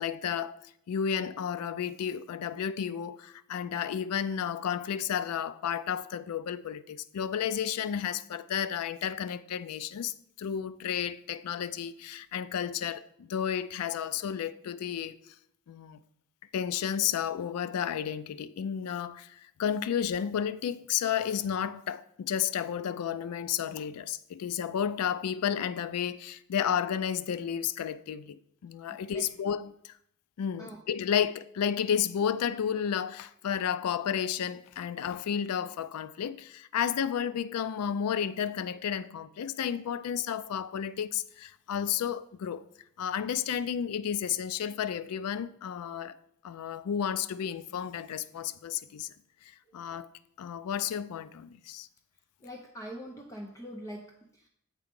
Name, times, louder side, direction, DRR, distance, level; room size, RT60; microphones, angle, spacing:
voice 1, 0.0-15.3 15.7-16.0 16.5-29.9 30.4-42.6 43.0-46.2 46.4-49.1 49.4-50.1 50.4-51.9, left 8 dB, 85° left, 0.4 m, -32 dB
voice 2, 52.4-54.5, equal, 15° left, 0.6 m, -43 dB
7.5 x 4.7 x 5.2 m
head